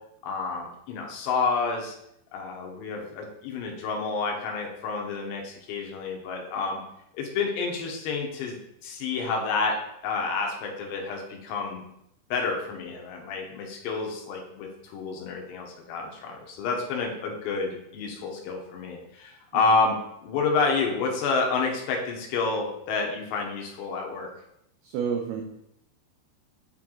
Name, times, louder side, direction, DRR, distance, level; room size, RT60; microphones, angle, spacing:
voice 1, 0.2-2.0 2.3-6.8 7.1-8.6 8.8-9.8 10.0-11.8 12.3-20.0 20.2-24.3, left 4 dB, 75° left, 1 dB, 3.0 m, -29 dB
voice 2, 24.8-25.4, right 7 dB, 85° right, 2 dB, 2.2 m, -29 dB
8.6 x 4.6 x 3.8 m, 0.77 s
omnidirectional pair, 5.3 m